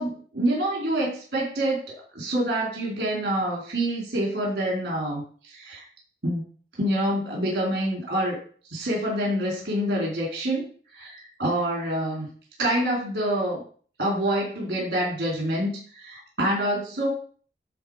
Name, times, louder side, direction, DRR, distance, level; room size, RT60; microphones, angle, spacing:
voice 1, 0.0-1.8 2.1-5.8 6.2-6.4 6.8-8.4 8.7-10.7 10.9-12.3 12.6-13.6 14.0-17.1, right 1 dB, 60° right, -3 dB, 4.1 m, -26 dB
12.0 x 4.1 x 5.1 m, 0.44 s
head